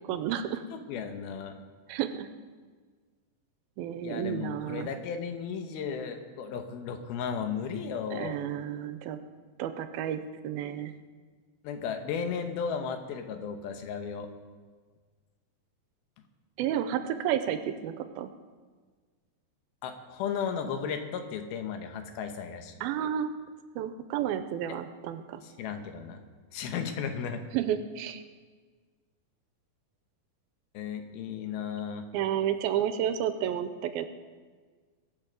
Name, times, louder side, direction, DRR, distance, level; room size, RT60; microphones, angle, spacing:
voice 1, 0.1-0.6 1.9-2.3 3.8-4.9 8.1-9.2 9.6-10.9 16.6-18.3 22.8-23.3 23.8-25.4 27.5-28.2 32.1-34.1, right 10 dB, 90° right, 10 dB, 2.5 m, -31 dB
voice 2, 0.7-1.6 4.0-8.4 11.6-14.3 19.8-22.7 25.4-26.2 26.5-27.4 30.7-32.1, left 6 dB, 80° left, 6 dB, 3.0 m, -35 dB
21.5 x 7.6 x 5.2 m, 1.5 s
omnidirectional pair, 4.3 m